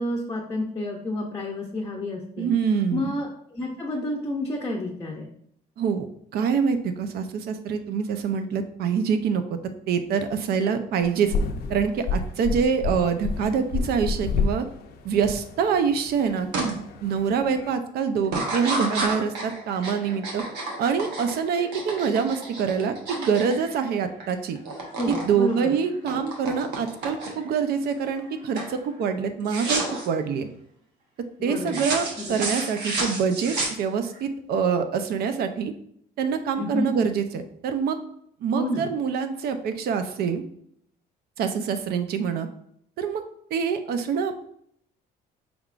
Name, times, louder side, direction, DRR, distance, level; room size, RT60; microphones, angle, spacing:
voice 1, 0.0-2.5 2.9-5.3 25.0-25.7 31.4-31.8 32.2-32.3 36.6-36.9 38.5-38.9, left 1 dB, 20° left, -1 dB, 0.6 m, -30 dB
voice 2, 2.4-3.1 5.8-6.1 6.3-9.6 9.9-11.3 11.7-14.7 15.0-20.4 20.8-24.6 25.1-30.5 31.4-35.7 36.2-38.0 38.4-40.4 41.4-42.5 43.0-43.2 43.5-44.3, right 6 dB, 70° right, 8 dB, 0.5 m, -25 dB
sound 1, 11.0-17.7, left 4 dB, 70° left, 0.5 m, -30 dB
sound 2, 16.5-16.7 17.2-17.6 18.2-24.3 24.6-25.3 25.6-27.5 28.0-28.3 28.6-28.8 29.5-30.1 31.7-34.2, right 2 dB, 85° right, 1.0 m, -31 dB
4.6 x 3.5 x 2.4 m, 0.69 s
cardioid pair, 110°, 17 cm